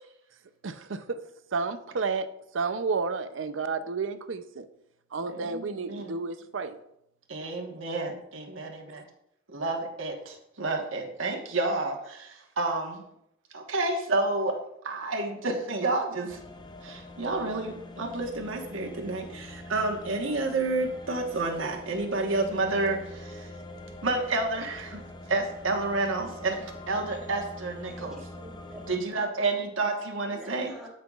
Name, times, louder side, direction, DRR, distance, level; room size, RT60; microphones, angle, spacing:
voice 1, 0.6-1.2 1.5-4.7 5.1-6.8, right 4 dB, 75° right, 0.6 m, -31 dB
voice 2, 5.3-6.1 7.3-9.0 9.5-13.0 13.5-14.6 14.8-16.4 16.8-23.5 24.0-25.0 25.3-28.2 28.9-30.7, right 2 dB, 90° right, 1.3 m, -30 dB
sound 1, 16.3-29.0, left 2 dB, 20° left, 0.5 m, -44 dB
voice 3, 26.9-27.3 27.9-29.3 30.3-30.9, equal, 5° right, 1.9 m, -48 dB
13.5 x 5.7 x 2.4 m
head